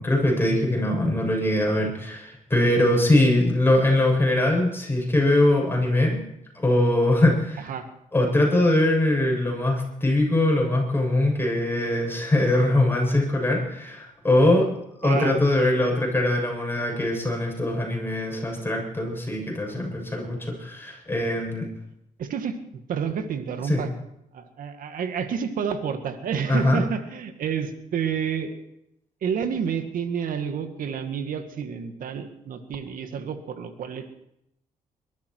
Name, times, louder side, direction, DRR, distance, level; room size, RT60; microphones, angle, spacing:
voice 1, 0.0-6.2 6.6-7.6 8.1-14.7 15.0-21.7 23.7-23.8 26.5-26.8, left 1 dB, 15° left, 0 dB, 7.3 m, -22 dB
voice 2, 15.0-15.4 22.2-23.9 24.3-28.6 29.2-34.1, right 7 dB, 70° right, 8 dB, 2.0 m, -29 dB
22.0 x 13.0 x 4.7 m, 0.79 s
cardioid pair, 80°, 15 cm